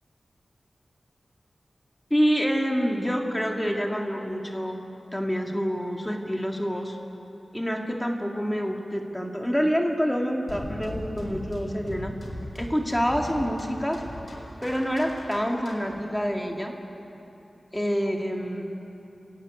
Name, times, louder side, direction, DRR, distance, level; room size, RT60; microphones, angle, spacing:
voice 1, 2.1-4.8 5.1-7.0 7.5-12.1 12.5-14.0 14.6-16.7 17.7-18.7, equal, 5° left, 1 dB, 2.1 m, -27 dB
sound 1, 10.5-16.0, left 1 dB, 60° left, 5.1 m, -38 dB
30.0 x 15.5 x 9.6 m, 3.0 s
wide cardioid pair, 100°, 0 cm